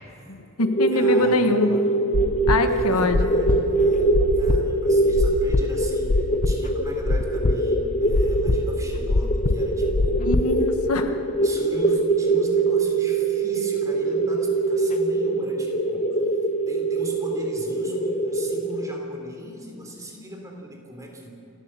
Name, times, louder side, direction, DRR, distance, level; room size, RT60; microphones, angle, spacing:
voice 1, 0.3-1.7 2.5-3.3 10.2-11.2, left 2 dB, 90° left, 7 dB, 1.4 m, -24 dB
sound 1, 0.6-18.9, right 2 dB, 35° left, 1.2 m, -23 dB
voice 2, 0.9-1.9 2.6-10.5 11.4-16.2 16.7-21.3, right 1 dB, 15° right, 1 dB, 3.4 m, -38 dB
sound 2, 2.1-10.8, left 2 dB, 70° left, 0.8 m, -24 dB
28.0 x 12.5 x 7.7 m, 2.8 s
head